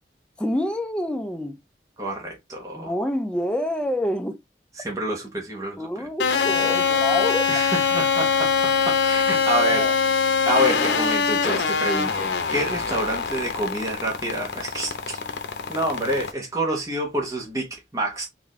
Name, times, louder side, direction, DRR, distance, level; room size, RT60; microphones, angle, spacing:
voice 1, 0.4-1.6 2.7-4.4 5.8-7.6 9.7-9.9, left 1 dB, 5° left, 0.4 m, -27 dB
voice 2, 2.0-2.9 4.8-5.9 7.5-9.9 10.5-15.2 15.7-18.3, right 1 dB, 20° right, 0.9 m, -27 dB
sound 1, 6.2-16.3, left 5 dB, 80° left, 0.7 m, -23 dB
4.1 x 2.6 x 3.1 m
head